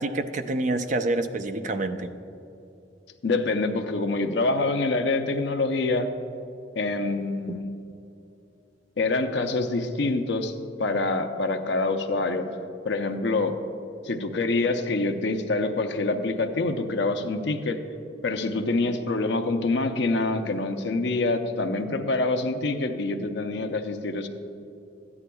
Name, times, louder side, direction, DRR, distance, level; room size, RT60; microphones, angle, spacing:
voice 1, 0.0-2.1 7.5-7.6, right 2 dB, 45° right, 8 dB, 0.5 m, -27 dB
voice 2, 3.2-6.1 6.8-7.7 9.0-12.5 12.8-13.6 14.0-17.8 18.2-24.3, left 3 dB, 75° left, 6 dB, 0.6 m, -26 dB
13.0 x 9.7 x 2.3 m, 2.8 s
head